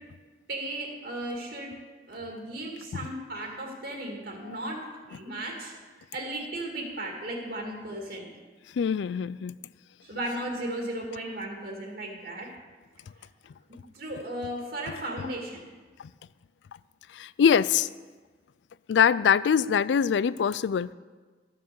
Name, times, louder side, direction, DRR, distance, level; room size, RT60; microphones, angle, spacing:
voice 1, 0.5-1.7 2.1-5.7 6.1-8.3 10.0-12.5 13.9-15.6, right 1 dB, 60° right, 0 dB, 2.2 m, -35 dB
voice 2, 8.8-9.6 17.1-17.9 18.9-20.9, left 7 dB, 85° left, 18 dB, 0.3 m, -23 dB
13.0 x 6.5 x 6.9 m, 1.4 s
head